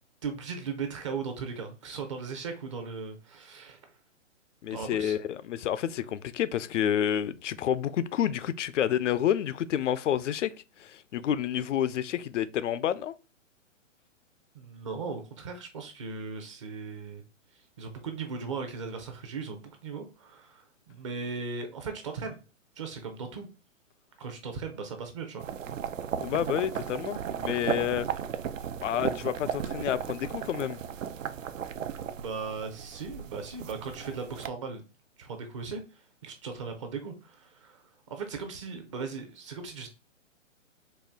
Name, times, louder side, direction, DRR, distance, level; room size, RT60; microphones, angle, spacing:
voice 1, 0.2-3.8 4.7-5.1 14.5-17.2 17.8-22.4 22.8-23.5 24.2-25.5 32.2-34.8 35.2-39.9, right 5 dB, 25° right, 0.5 m, -38 dB
voice 2, 4.6-10.5 10.8-13.1 26.2-28.1 28.8-30.8, left 10 dB, 70° left, 0.5 m, -29 dB
sound 1, 25.4-34.5, right 8 dB, 80° right, 0.6 m, -35 dB
4.3 x 2.4 x 3.4 m
hypercardioid pair, 145°, 38 cm